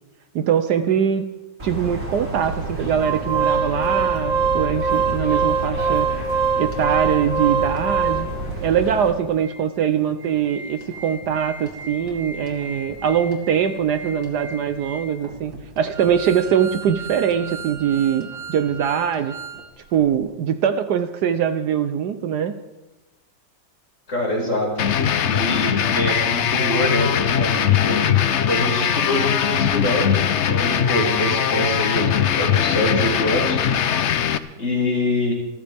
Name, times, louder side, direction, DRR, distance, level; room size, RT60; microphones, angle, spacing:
voice 1, 0.3-1.2 1.6-6.1 6.6-8.3 8.6-19.3 19.9-22.5, right 8 dB, 70° right, 9 dB, 1.2 m, -22 dB
sound 1, 1.6-9.1, right 2 dB, 40° right, 3.9 m, -30 dB
Organ, 3.0-8.5 9.1-9.2 9.4-9.6 10.0-19.6 19.9-20.1, right 5 dB, 90° right, 3.0 m, -26 dB
voice 2, 24.1-24.7 25.3-28.0 28.4-33.6 34.6-35.3, left 1 dB, 40° left, -3 dB, 5.5 m, -24 dB
sound 2, 24.8-34.4, left 9 dB, 60° left, 0.7 m, -20 dB
27.5 x 14.0 x 3.5 m, 1.0 s
omnidirectional pair, 2.0 m